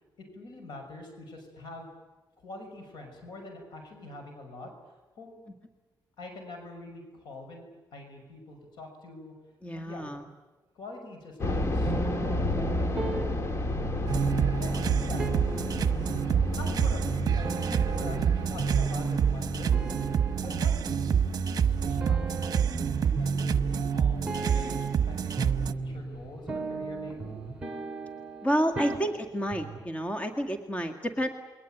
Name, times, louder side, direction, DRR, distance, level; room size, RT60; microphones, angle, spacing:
voice 1, 0.2-1.9 2.4-4.7 5.2-5.4 6.2-9.3 9.7-10.1 10.7-13.8 14.6-15.3 16.6-21.1 21.7-22.5 23.0-27.3, left 2 dB, 75° left, 4 dB, 6.3 m, -44 dB
voice 2, 9.6-10.2 28.4-31.3, equal, 15° left, 5 dB, 1.9 m, -29 dB
sound 1, 11.4-26.3 26.5-26.6 27.3-27.5, left 1 dB, 35° left, 2.1 m, -34 dB
sound 2, 11.9-29.8, right 3 dB, 15° right, 2.4 m, -35 dB
sound 3, 14.1-25.7, right 8 dB, 50° right, 1.0 m, -28 dB
28.0 x 22.5 x 9.2 m, 1.2 s
cardioid pair, 115°, 8 cm